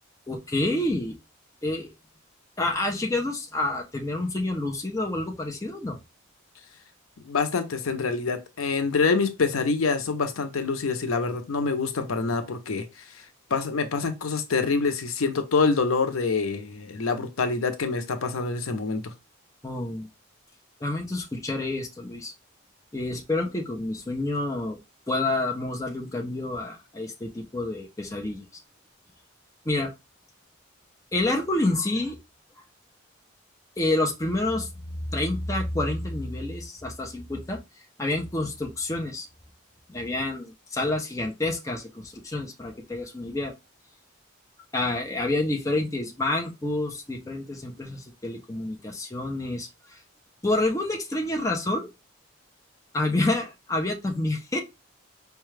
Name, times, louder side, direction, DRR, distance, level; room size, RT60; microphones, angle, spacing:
voice 1, 0.3-1.1 1.6-1.9 2.6-6.0 19.6-20.1 20.8-22.3 22.9-24.8 25.1-28.5 29.7-29.9 31.1-32.2 33.8-34.7 35.1-37.6 38.0-39.3 39.9-43.5 44.7-50.0 50.4-51.9 52.9-54.6, left 2 dB, 15° left, 0.6 m, -28 dB
voice 2, 7.2-13.2 13.5-19.1, left 4 dB, 85° left, 0.6 m, -26 dB
4.6 x 2.3 x 3.2 m
head